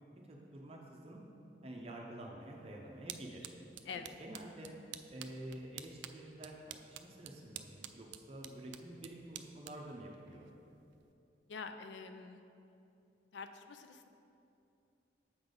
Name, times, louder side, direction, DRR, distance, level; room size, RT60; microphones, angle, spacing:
voice 1, 0.2-1.2 1.6-3.5 4.2-4.8 5.1-10.5, right 1 dB, 35° right, -1 dB, 0.6 m, -49 dB
sound 1, 2.4-11.1, right 11 dB, 80° right, 0.3 m, -52 dB
voice 2, 3.9-4.2 11.5-12.4 13.3-14.1, left 5 dB, 80° left, 8 dB, 0.4 m, -46 dB
7.1 x 3.9 x 5.1 m, 2.7 s
head